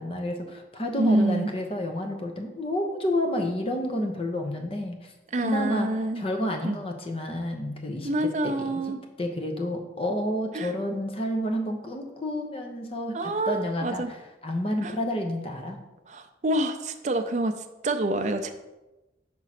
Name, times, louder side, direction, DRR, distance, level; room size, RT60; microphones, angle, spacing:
voice 1, 0.0-5.1 5.4-5.9 6.2-8.1 8.4-8.8 9.2-14.2 14.4-15.8, left 1 dB, 30° left, 3 dB, 0.8 m, -30 dB
voice 2, 1.0-1.5 5.3-6.2 6.6-6.8 8.0-9.0 10.5-10.7 13.1-14.1 14.8-14.9 16.1-17.5 17.8-18.5, right 1 dB, 40° right, 7 dB, 0.5 m, -26 dB
6.1 x 3.8 x 5.8 m, 1.1 s
head